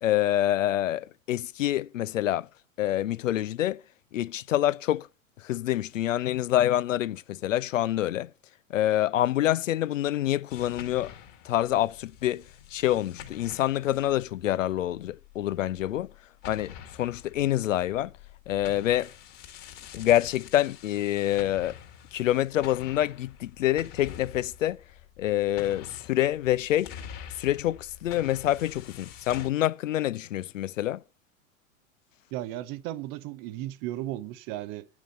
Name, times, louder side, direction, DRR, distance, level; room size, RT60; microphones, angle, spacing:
voice 1, 0.0-2.5 2.8-3.8 4.1-5.1 5.4-8.3 8.7-11.1 11.4-12.4 12.7-16.1 16.5-18.1 18.5-19.1 19.9-21.8 22.1-24.8 25.2-26.9 27.4-31.0, left 13 dB, 65° left, 0.5 m, -26 dB
sound 1, 10.5-16.1 16.4-29.5, left 9 dB, 40° left, 2.2 m, -46 dB
voice 2, 32.3-34.9, right 14 dB, 25° right, 0.4 m, -35 dB
9.7 x 5.9 x 7.5 m
figure-of-eight pair, 85°, 43 cm